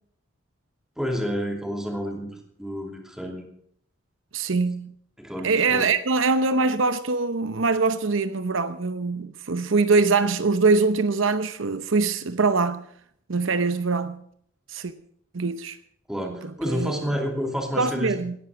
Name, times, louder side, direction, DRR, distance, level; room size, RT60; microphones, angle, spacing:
voice 1, 1.0-3.4 5.2-5.9 16.1-18.2, equal, 5° right, 2.8 m, -30 dB
voice 2, 4.3-4.9 5.4-12.8 13.3-14.2 14.7-14.9 15.3-15.8 16.7-17.0 17.8-18.3, right 4 dB, 70° right, 0.8 m, -23 dB
18.0 x 11.0 x 6.2 m
head